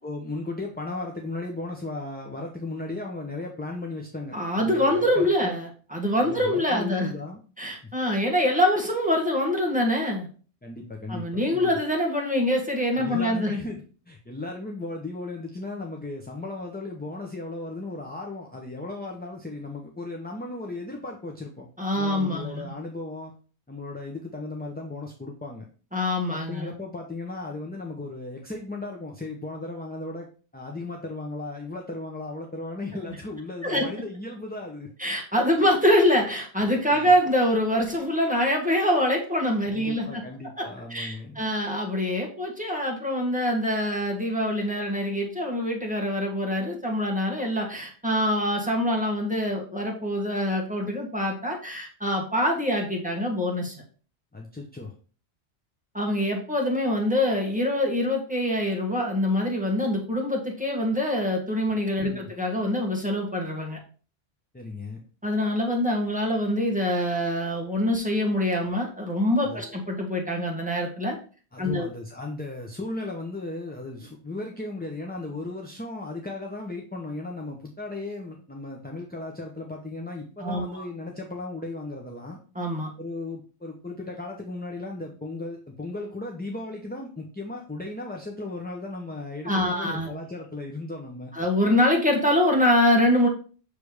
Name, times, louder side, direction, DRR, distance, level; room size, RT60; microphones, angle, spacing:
voice 1, 0.0-5.6 6.2-7.4 10.6-11.8 13.0-21.7 21.9-23.3 23.7-25.7 26.3-30.3 30.5-34.9 36.9-37.1 39.7-41.4 54.3-54.9 61.7-62.3 64.5-65.0 69.4-69.8 71.5-82.4 83.0-91.3, left 2 dB, 10° left, 0 dB, 0.6 m, -36 dB
voice 2, 4.3-7.1 7.6-10.3 11.1-13.5 21.8-22.7 25.9-26.7 33.1-33.2 33.6-33.9 35.0-40.2 40.6-53.7 55.9-63.8 65.2-71.2 71.6-71.9 80.4-80.8 82.5-82.9 89.4-90.1 91.3-93.3, left 1 dB, 5° right, -1 dB, 1.5 m, -25 dB
6.8 x 3.3 x 4.8 m, 0.39 s
omnidirectional pair, 1.1 m